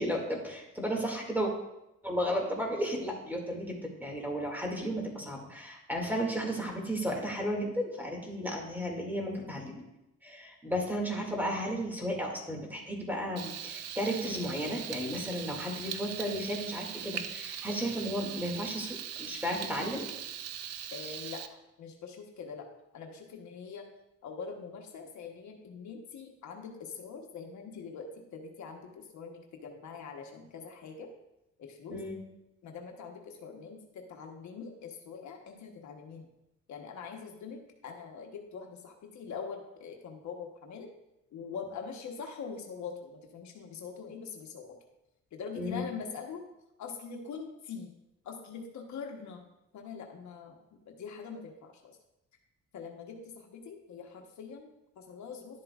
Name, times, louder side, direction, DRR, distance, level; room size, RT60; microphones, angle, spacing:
voice 1, 0.0-1.5 2.0-9.9 10.2-20.1 21.0-21.1 31.9-32.2 45.6-45.8, equal, 5° right, 0 dB, 2.2 m, -34 dB
Frying (food), 13.4-21.5, right 9 dB, 55° right, 0.6 m, -40 dB
voice 2, 20.9-22.7 22.9-23.9 24.2-31.1 31.6-32.0 32.6-36.3 36.7-40.9 41.3-44.8 45.3-46.5 46.8-47.9 48.2-49.4 49.7-51.9 52.7-55.6, left 5 dB, 70° left, 3 dB, 1.1 m, -43 dB
11.0 x 7.5 x 2.4 m, 0.89 s
cardioid pair, 90°, 30 cm